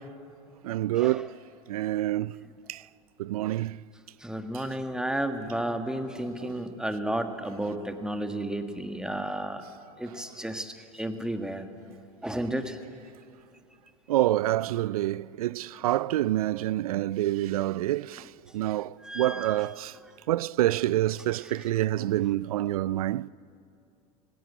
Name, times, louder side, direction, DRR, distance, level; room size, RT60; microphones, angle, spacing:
voice 1, 0.6-1.3 1.7-2.3 2.7-2.8 3.2-3.8 6.4-6.5 14.1-18.2 18.5-19.9 20.3-23.3, right 14 dB, 85° right, 0.4 m, -27 dB
voice 2, 4.2-9.6 10.0-11.7 12.2-12.8 19.0-19.7, right 1 dB, 5° right, 1.6 m, -32 dB
17.0 x 17.0 x 9.4 m
hypercardioid pair, 90°, 18 cm